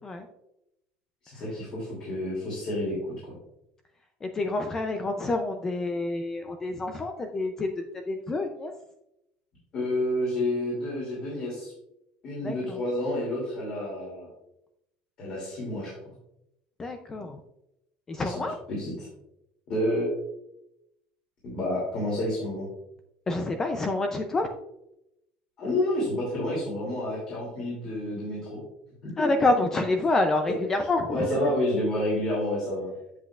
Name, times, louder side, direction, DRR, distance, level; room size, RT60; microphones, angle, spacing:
voice 1, 1.3-3.0 3.2-3.4 9.7-11.7 12.2-14.3 15.2-15.9 18.2-18.4 18.7-19.1 19.7-20.2 21.4-22.7 25.6-28.6 29.0-29.3 31.1-32.9, left 1 dB, 35° left, -5 dB, 2.8 m, -29 dB
voice 2, 4.2-8.7 12.4-12.8 16.8-17.4 18.1-18.5 23.3-24.5 29.2-31.5, left 2 dB, 15° left, 6 dB, 0.5 m, -28 dB
8.0 x 7.7 x 2.4 m, 0.84 s
cardioid pair, 180°, 3 cm